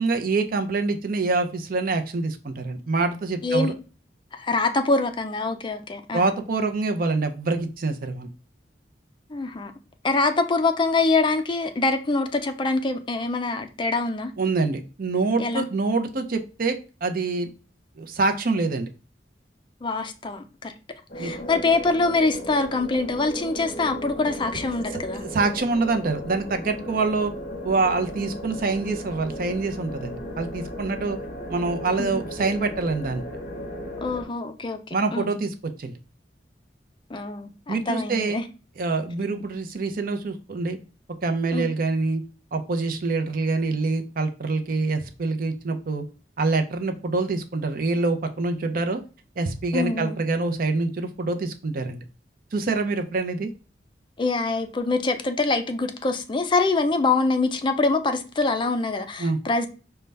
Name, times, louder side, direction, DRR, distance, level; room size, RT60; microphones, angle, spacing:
voice 1, 0.0-3.7 6.1-8.3 14.4-16.8 17.0-17.5 18.0-18.9 21.2-21.4 25.2-27.3 27.6-31.2 31.5-33.2 34.9-35.9 37.7-38.4 38.8-40.8 41.2-42.2 42.5-46.0 46.4-49.0 49.4-52.0 52.5-53.5 59.2-59.4, right 3 dB, 55° right, 0.5 m, -25 dB
voice 2, 3.4-3.7 4.3-6.3 9.3-9.7 10.0-14.3 15.4-15.7 19.8-20.7 21.2-25.2 32.0-32.1 34.0-34.8 35.1-35.3 37.1-38.4 41.5-41.7 49.7-50.2 54.2-59.7, left 3 dB, 30° left, 0.4 m, -24 dB
sound 1, 21.1-34.2, equal, 45° left, 0.9 m, -36 dB
5.2 x 2.2 x 3.2 m
head